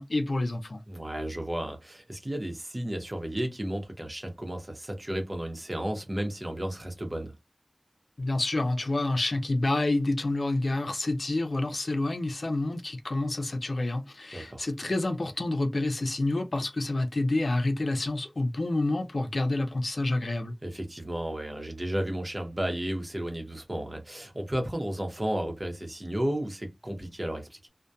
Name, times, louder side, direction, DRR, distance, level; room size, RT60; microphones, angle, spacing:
voice 1, 0.0-0.8 8.2-20.5, left 2 dB, 90° left, 0.5 m, -28 dB
voice 2, 0.9-7.3 14.3-14.6 20.6-27.7, right 1 dB, 40° right, 0.8 m, -33 dB
2.7 x 2.1 x 2.2 m
wide cardioid pair, 50°, 0 cm